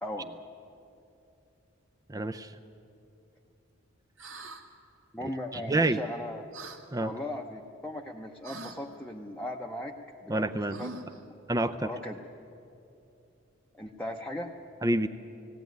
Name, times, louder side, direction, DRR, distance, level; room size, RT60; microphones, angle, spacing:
voice 1, 0.0-0.4 5.1-6.5 7.0-9.9 10.2-10.9 11.5-12.2 13.7-14.5, left 1 dB, 5° left, 0 dB, 0.8 m, -38 dB
voice 2, 2.1-2.5 5.5-6.0 6.9-7.1 10.3-10.8 11.5-11.9 14.8-15.1, right 2 dB, 15° right, 10 dB, 0.5 m, -27 dB
sound 1, 4.2-4.6 6.5-6.8 8.4-8.8 10.7-11.2, right 2 dB, 75° right, 1.8 m, -42 dB
18.5 x 17.0 x 9.3 m, 2.7 s
head